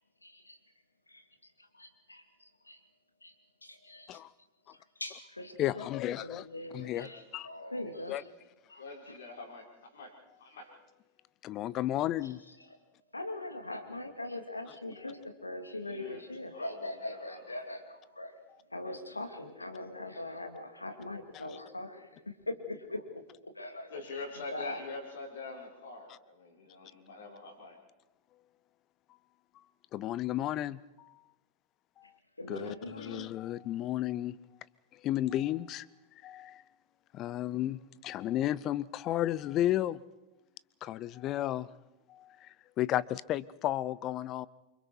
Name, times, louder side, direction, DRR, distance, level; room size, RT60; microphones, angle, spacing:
voice 1, 0.2-0.6 1.1-2.8 3.2-3.3 3.6-4.2 4.7-5.9 6.2-8.2 8.7-9.1 13.1-18.4 18.7-23.1 23.4-23.9 24.5-24.8 32.4-33.3, left 1 dB, 80° left, 7 dB, 2.6 m, -42 dB
voice 2, 5.6-6.5 6.7-7.1 7.3-7.5 8.1-8.2 11.4-12.4 21.3-21.6 29.9-31.2 32.0-32.1 32.5-34.4 34.9-35.9 36.2-36.6 37.1-40.0 40.8-41.7 42.1-44.5, left 13 dB, 35° left, 21 dB, 0.7 m, -33 dB
voice 3, 8.8-10.8 15.8-16.2 16.5-17.6 23.9-27.8, left 3 dB, 65° left, 0 dB, 5.7 m, -44 dB
28.5 x 25.0 x 4.7 m, 0.99 s
figure-of-eight pair, 90°, 0 cm